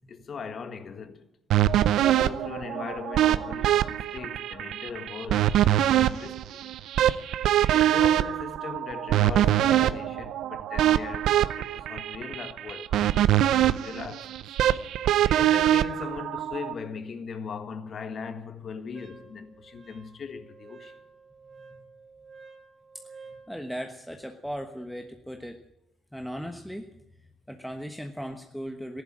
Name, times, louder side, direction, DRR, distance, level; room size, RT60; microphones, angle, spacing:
voice 1, 0.1-1.3 2.0-6.6 7.7-14.4 15.0-20.9, left 5 dB, 50° left, 1.6 m, -39 dB
sound 1, 1.5-16.7, right 12 dB, 80° right, 0.6 m, -24 dB
Wind instrument woodwind instrument, 18.9-23.5, right 4 dB, 35° right, 3.3 m, -51 dB
voice 2, 23.5-25.6 26.1-26.9 27.5-29.0, equal, ahead, 1.2 m, -37 dB
14.5 x 11.5 x 8.8 m
cardioid pair, 90°, 0 cm